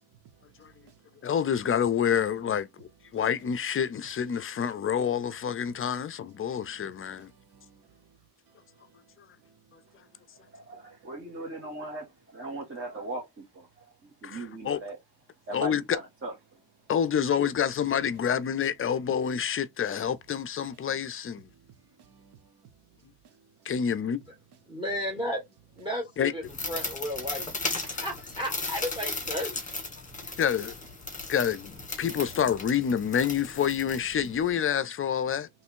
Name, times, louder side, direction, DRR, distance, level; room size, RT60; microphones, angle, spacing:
voice 1, 0.0-1.3 5.9-6.0 6.4-11.8 21.5-23.7 27.9-28.0 30.1-30.2, right 7 dB, 85° right, 0.9 m, -61 dB
voice 2, 1.2-7.3 14.2-14.8 15.5-16.0 16.9-21.5 23.7-24.2 26.2-26.3 30.4-30.7 31.3-35.5, left 8 dB, 35° left, 0.4 m, -28 dB
voice 3, 10.5-12.0 12.3-13.2 14.2-15.0 15.5-16.3, right 1 dB, 35° right, 1.5 m, -37 dB
voice 4, 24.7-25.4 25.8-27.4 27.7-29.5, equal, 10° right, 1.4 m, -33 dB
sound 1, 26.4-34.5, left 3 dB, 20° left, 1.6 m, -36 dB
3.4 x 3.1 x 4.4 m
cardioid pair, 140°, 38 cm